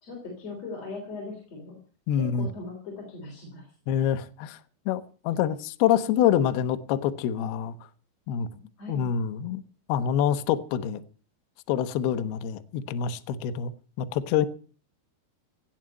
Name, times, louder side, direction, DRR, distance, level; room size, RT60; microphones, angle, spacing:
voice 1, 0.0-1.8 2.1-3.7 8.5-9.1, left 3 dB, 35° left, 4.1 m, -39 dB
voice 2, 2.1-2.5 3.9-4.6 4.9-7.8 8.3-8.5 8.9-9.6 9.9-11.0 11.7-13.7 14.0-14.5, left 9 dB, 90° left, 2.2 m, -26 dB
17.0 x 7.3 x 9.0 m
omnidirectional pair, 5.8 m